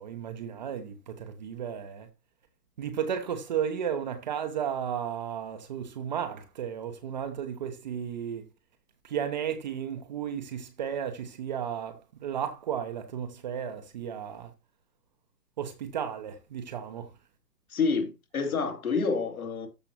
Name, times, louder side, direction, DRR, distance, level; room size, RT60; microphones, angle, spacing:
voice 1, 0.0-2.1 2.8-8.5 9.0-14.5 15.6-17.1, right 8 dB, 25° right, 0.9 m, -34 dB
voice 2, 17.7-19.7, left 4 dB, 55° left, 2.6 m, -28 dB
13.5 x 5.4 x 2.9 m
figure-of-eight pair, 130°, 49 cm